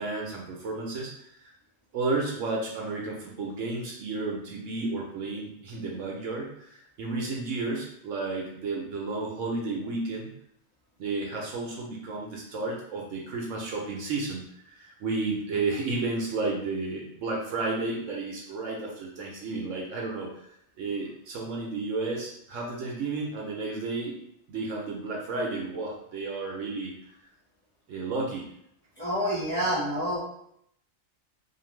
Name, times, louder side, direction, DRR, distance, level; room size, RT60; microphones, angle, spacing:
voice 1, 0.0-1.5 1.9-10.3 11.0-20.3 20.8-24.1 24.5-27.1 27.9-28.4, right 3 dB, 70° right, -2 dB, 0.9 m, -32 dB
voice 2, 29.0-30.2, equal, 10° left, -8 dB, 1.0 m, -28 dB
2.6 x 2.5 x 3.0 m, 0.73 s
omnidirectional pair, 1.4 m